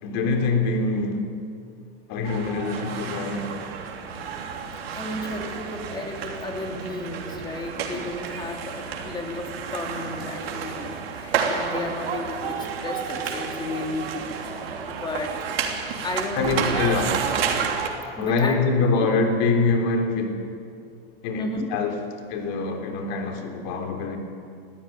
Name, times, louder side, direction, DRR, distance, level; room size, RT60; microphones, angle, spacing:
voice 1, 0.0-1.2 2.1-3.5 16.3-17.1 18.2-20.4 21.2-21.9 22.3-24.2, left 3 dB, 50° left, 3 dB, 3.8 m, -24 dB
sound 1, 2.2-17.9, right 6 dB, 85° right, 3.3 m, -30 dB
voice 2, 4.9-14.3 14.9-15.4 15.7-16.8 17.1-17.2 18.2-18.6 19.0-19.1 21.4-21.7, left 2 dB, 15° left, 2 dB, 2.9 m, -33 dB
20.5 x 14.5 x 9.3 m, 2.4 s
supercardioid pair, 145°, 29 cm